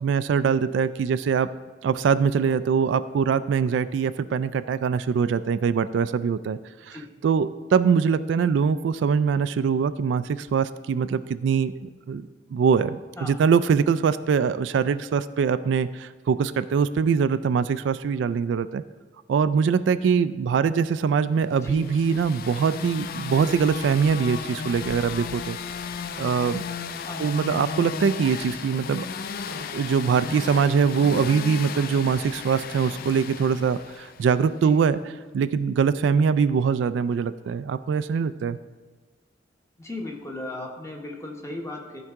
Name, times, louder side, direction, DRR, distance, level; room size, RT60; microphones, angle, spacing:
voice 1, 0.0-1.5 1.8-6.6 6.9-7.0 7.2-11.7 12.1-18.8 19.3-25.6 26.2-26.6 27.2-29.1 29.5-35.0 35.3-38.6, right 6 dB, 70° right, 13 dB, 0.3 m, -23 dB
voice 2, 21.5-21.8 27.0-27.3 34.6-34.8 39.8-42.0, left 2 dB, 15° left, 1 dB, 1.0 m, -36 dB
sound 1, 21.6-34.5, left 6 dB, 50° left, 0.3 m, -35 dB
13.5 x 4.7 x 3.6 m, 1.4 s
head